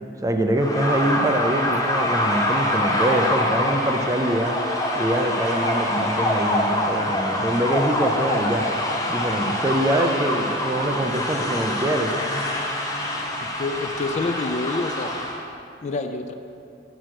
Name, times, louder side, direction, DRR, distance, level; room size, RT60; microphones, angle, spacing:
voice 1, 0.2-4.6 5.0-8.7 9.1-12.2, right 1 dB, 20° right, 5 dB, 0.4 m, -24 dB
sound 1, 0.6-15.4, left 1 dB, 20° left, 0.8 m, -25 dB
voice 2, 13.6-15.1 15.8-16.3, left 3 dB, 40° left, 7 dB, 0.4 m, -27 dB
8.1 x 4.7 x 5.9 m, 2.6 s
head